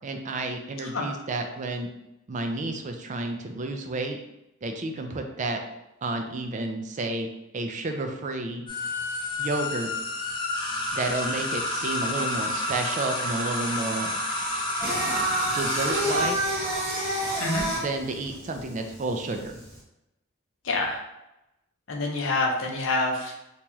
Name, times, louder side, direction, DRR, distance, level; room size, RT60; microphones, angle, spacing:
voice 1, 0.0-1.9 2.3-4.2 4.6-5.6 6.0-7.3 7.5-8.6 9.4-9.9 10.9-14.2 15.5-16.4 17.8-19.6, right 2 dB, 40° right, 5 dB, 0.4 m, -31 dB
sound 1, 8.7-17.6, left 1 dB, 25° left, 0.5 m, -30 dB
Singing, 14.8-19.8, right 1 dB, 15° right, 1.1 m, -28 dB
voice 2, 20.6-21.0 21.9-23.4, left 2 dB, 70° left, 1 dB, 0.7 m, -27 dB
3.0 x 2.9 x 3.4 m, 0.90 s
head